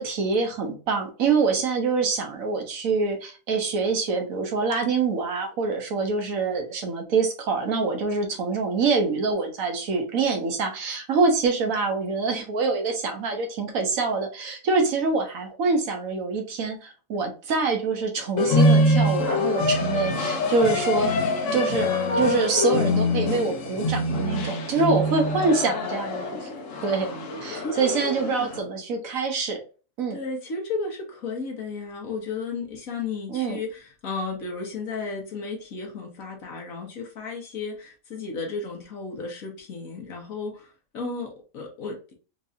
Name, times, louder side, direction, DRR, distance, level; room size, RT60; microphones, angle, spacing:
voice 1, 0.0-21.2 21.5-21.9 22.2-26.5 26.8-27.1 27.4-29.6 30.0-30.2 33.3-33.6, right 4 dB, 85° right, 2 dB, 1.3 m, -25 dB
sound 1, 18.4-28.6, left 1 dB, 70° left, 1.1 m, -24 dB
voice 2, 27.5-28.5 30.1-42.1, left 4 dB, 85° left, 1 dB, 1.6 m, -34 dB
4.5 x 2.7 x 2.6 m, 0.35 s
omnidirectional pair, 1.4 m